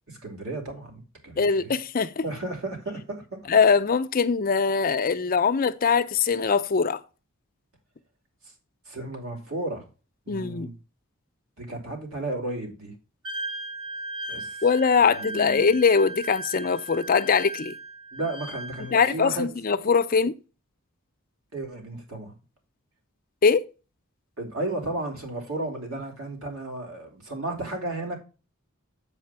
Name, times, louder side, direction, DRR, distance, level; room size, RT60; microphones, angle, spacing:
voice 1, 0.1-1.7 2.2-3.4 8.8-9.9 10.3-10.7 11.6-12.9 14.3-14.6 15.0-15.7 18.1-19.5 21.5-22.4 24.4-28.2, right 2 dB, 90° right, 3.1 m, -33 dB
voice 2, 1.4-2.2 3.5-7.0 10.3-10.7 14.6-17.7 18.9-20.3 23.4-23.7, left 5 dB, 40° left, 0.5 m, -22 dB
Wind instrument woodwind instrument, 13.2-19.2, right 1 dB, 20° right, 2.0 m, -37 dB
7.5 x 4.9 x 5.6 m
head